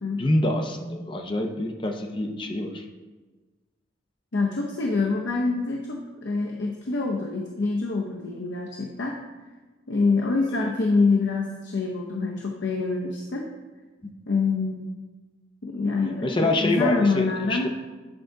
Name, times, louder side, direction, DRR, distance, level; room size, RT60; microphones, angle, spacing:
voice 1, 0.2-2.8 10.5-10.7 14.0-14.1 16.2-17.7, left 1 dB, 25° left, 4 dB, 0.6 m, -26 dB
voice 2, 4.3-9.2 9.9-13.5 14.3-14.9 15.6-17.7, left 3 dB, 70° left, 0 dB, 0.7 m, -25 dB
8.8 x 3.8 x 4.6 m, 1.3 s
head